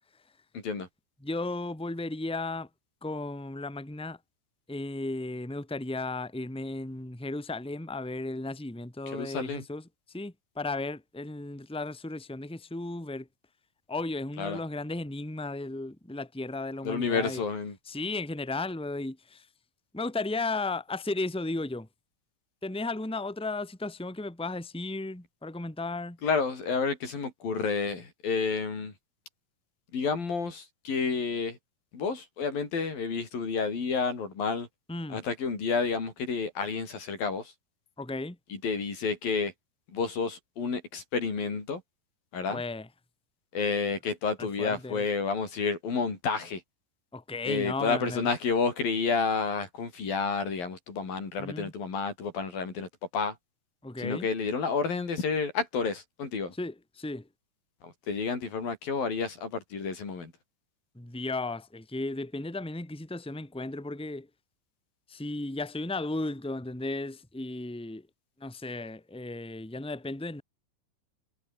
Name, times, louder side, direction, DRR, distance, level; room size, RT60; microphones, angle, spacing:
voice 1, 0.5-0.9 9.1-9.6 14.4-14.6 16.8-17.8 26.2-28.9 29.9-31.6 31.9-34.7 35.1-37.5 38.5-39.5 39.9-41.8 42.3-42.6 43.5-46.6 47.5-53.4 54.0-56.5 57.8-60.3, left 5 dB, 75° left, 7.4 m, -30 dB
voice 2, 1.2-2.7 3.0-4.2 4.7-13.3 13.9-17.4 17.9-19.5 19.9-21.9 22.6-26.2 34.9-35.2 38.0-38.4 42.5-42.9 44.4-45.1 47.1-48.3 51.4-51.7 53.8-54.3 56.5-57.3 60.9-64.3 65.1-68.1 68.4-70.4, left 2 dB, ahead, 3.0 m, -35 dB
omnidirectional pair, 4.1 m